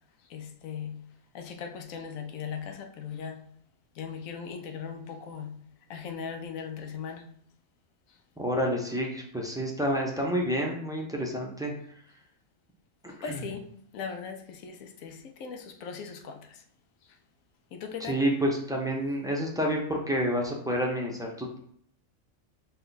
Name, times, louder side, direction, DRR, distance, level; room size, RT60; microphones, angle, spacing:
voice 1, 0.3-1.1 1.3-3.5 4.0-5.6 5.9-7.3 13.2-16.6 17.7-18.2, left 6 dB, 85° left, 1.0 m, -39 dB
voice 2, 8.4-11.7 13.0-13.4 18.0-21.6, equal, 5° right, 0.5 m, -29 dB
5.5 x 2.3 x 4.0 m
omnidirectional pair, 1.4 m